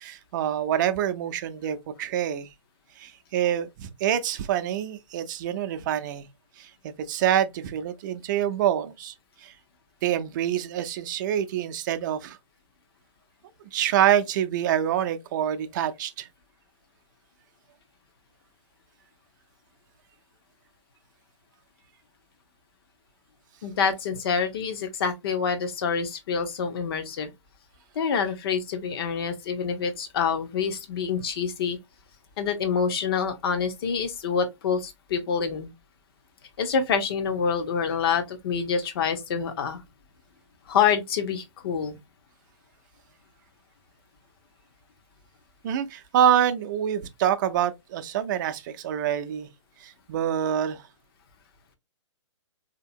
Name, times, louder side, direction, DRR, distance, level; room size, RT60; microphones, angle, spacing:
voice 1, 0.0-2.5 3.0-6.3 6.6-9.1 9.4-9.5 10.0-12.4 13.7-16.3 45.6-49.5 49.8-50.8, right 10 dB, 40° right, 0.5 m, -26 dB
voice 2, 23.6-27.3 27.9-31.8 32.4-35.7 36.6-39.8 40.7-42.0, left 6 dB, 50° left, 1.0 m, -26 dB
3.4 x 2.8 x 2.6 m
hypercardioid pair, 130°, 16 cm